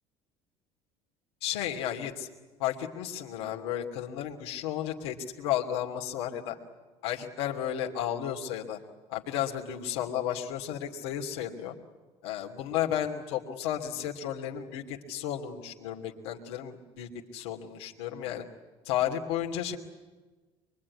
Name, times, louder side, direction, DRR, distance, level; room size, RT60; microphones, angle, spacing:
voice 1, 1.4-2.3 2.6-6.6 7.0-8.8 9.1-11.7 12.2-18.4 18.8-19.8, left 10 dB, 80° left, 0 dB, 2.7 m, -33 dB
24.0 x 23.5 x 9.7 m, 1.3 s
hypercardioid pair, 75°, 13 cm